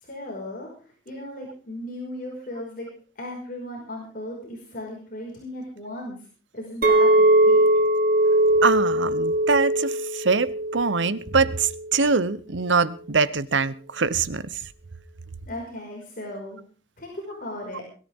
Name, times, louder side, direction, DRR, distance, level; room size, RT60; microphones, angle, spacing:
voice 1, 0.0-0.7 1.1-2.9 3.2-6.2 6.5-7.1 7.4-7.8 15.5-16.6 17.0-17.8, left 1 dB, 45° left, 5.5 m, -36 dB
Chink clink, 6.8-11.2 11.5-11.9, right 1 dB, 50° right, 2.9 m, -20 dB
voice 2, 8.6-14.4, right 4 dB, 80° right, 0.9 m, -23 dB
22.0 x 14.0 x 3.7 m
head